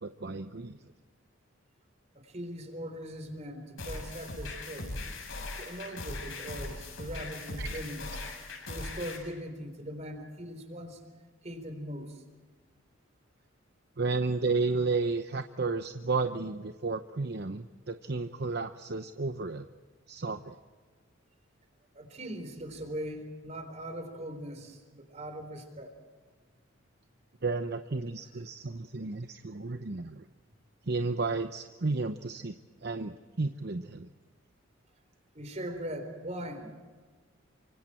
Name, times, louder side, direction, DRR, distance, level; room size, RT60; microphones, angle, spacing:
voice 1, 0.0-0.8 7.6-7.7 14.0-19.7 20.1-20.6 27.4-30.2 30.9-32.5 32.8-34.1, right 3 dB, 55° right, 8 dB, 0.8 m, -32 dB
voice 2, 2.2-5.0 5.6-8.1 8.7-11.0 11.4-12.2 21.9-25.9 35.3-36.7, equal, 35° right, 7 dB, 4.1 m, -40 dB
sound 1, 3.8-9.2, left 2 dB, 75° left, 7.7 m, -39 dB
29.0 x 25.5 x 4.5 m, 1.5 s
head